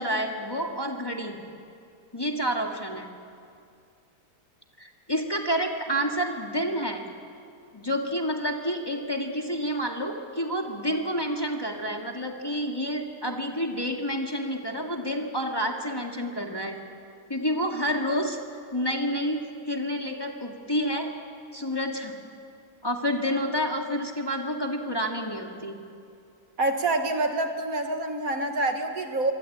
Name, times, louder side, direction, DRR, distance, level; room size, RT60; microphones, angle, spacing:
voice 1, 0.0-1.4 2.1-3.1 4.8-7.0 7.7-16.8 17.3-21.1 21.5-22.1 22.8-25.8, equal, 15° left, 1 dB, 2.0 m, -29 dB
voice 2, 26.6-29.3, right 2 dB, 55° right, 5 dB, 2.0 m, -26 dB
25.5 x 24.5 x 8.7 m, 2.4 s
omnidirectional pair, 1.8 m